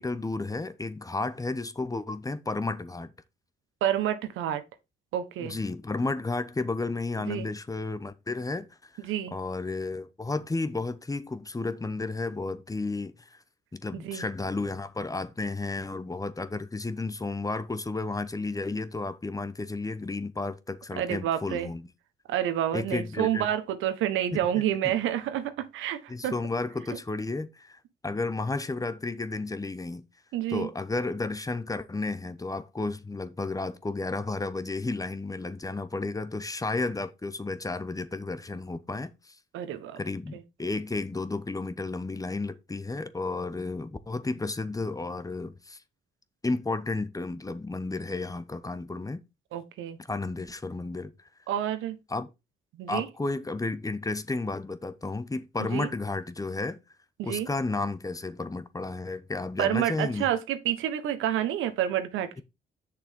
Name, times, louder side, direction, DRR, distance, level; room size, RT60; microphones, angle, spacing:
voice 1, 0.0-3.1 5.4-8.9 9.3-13.4 13.7-21.9 22.7-23.5 24.3-24.4 24.8-25.0 26.1-30.0 30.5-39.4 40.0-45.8 46.4-49.2 50.1-51.1 52.1-52.3 52.9-56.8 57.2-60.3, left 3 dB, 15° left, 1.0 m, -32 dB
voice 2, 3.8-4.6 5.1-5.6 7.2-7.5 9.0-9.3 13.9-14.3 21.0-21.7 22.3-26.3 30.3-30.7 39.5-40.0 40.3-40.4 49.5-50.0 51.5-51.9 52.8-53.1 55.7-55.9 57.2-57.5 59.6-62.4, right 11 dB, 90° right, 1.3 m, -29 dB
8.0 x 6.7 x 3.7 m
cardioid pair, 90°, 20 cm